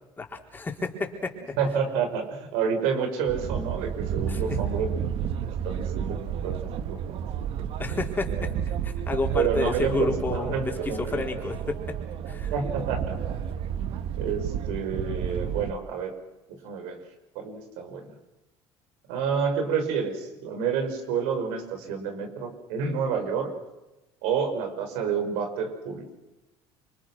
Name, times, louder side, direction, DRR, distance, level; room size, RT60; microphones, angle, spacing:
voice 1, 0.2-1.6 4.3-4.4 7.8-8.5 8.8-10.7 11.0-11.8 12.3-12.5, left 3 dB, 20° left, 2 dB, 4.2 m, -30 dB
voice 2, 1.6-4.9 5.4-7.2 7.6-7.7 9.3-11.2 12.5-13.8 14.2-16.1 16.5-17.0 17.4-18.2 19.1-23.5 24.2-26.1, right 6 dB, 90° right, 6 dB, 5.5 m, -29 dB
sound 1, 3.3-15.7, right 8 dB, 60° right, 1.3 m, -31 dB
28.5 x 24.5 x 6.3 m, 1.0 s
cardioid pair, 130°, 11 cm